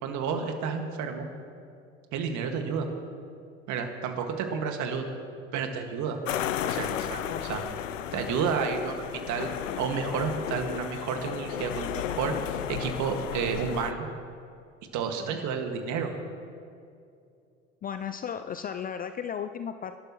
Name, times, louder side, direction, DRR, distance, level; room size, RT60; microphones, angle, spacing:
voice 1, 0.0-1.3 2.1-2.9 3.7-5.0 5.5-6.2 6.6-7.6 8.1-9.5 9.8-14.1 14.9-16.1, right 6 dB, 50° right, 5 dB, 1.9 m, -31 dB
sound 1, 6.3-13.9, left 10 dB, 80° left, 0.6 m, -34 dB
voice 2, 17.8-20.0, left 8 dB, 25° left, 10 dB, 0.4 m, -35 dB
24.5 x 12.0 x 3.1 m, 2.5 s
hypercardioid pair, 75°, 38 cm